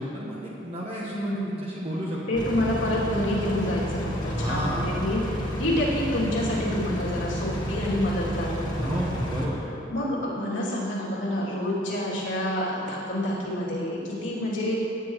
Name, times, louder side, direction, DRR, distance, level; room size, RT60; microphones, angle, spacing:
voice 1, 0.0-2.2 4.2-5.1 8.8-9.6, equal, 30° right, -6 dB, 1.3 m, -31 dB
voice 2, 1.1-1.6 2.3-9.0 9.9-14.7, left 1 dB, 90° left, -6 dB, 2.9 m, -28 dB
sound 1, 2.3-9.5, equal, 20° left, 1.4 m, -31 dB
16.5 x 9.7 x 3.2 m, 2.9 s
head